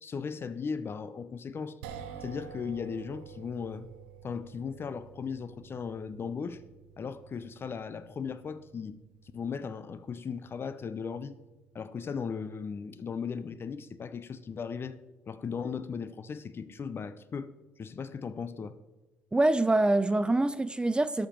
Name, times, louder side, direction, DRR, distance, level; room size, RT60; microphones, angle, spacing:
voice 1, 0.0-1.8 2.2-3.9 4.2-6.6 7.0-9.0 9.3-11.3 11.7-14.9 15.3-17.5 17.8-18.7, left 6 dB, 40° left, 0.6 m, -37 dB
sound 1, 1.8-14.1, right 8 dB, 85° right, 0.7 m, -51 dB
voice 2, 19.3-21.3, right 2 dB, 15° right, 0.5 m, -25 dB
12.0 x 5.3 x 4.5 m
hypercardioid pair, 55°, 6 cm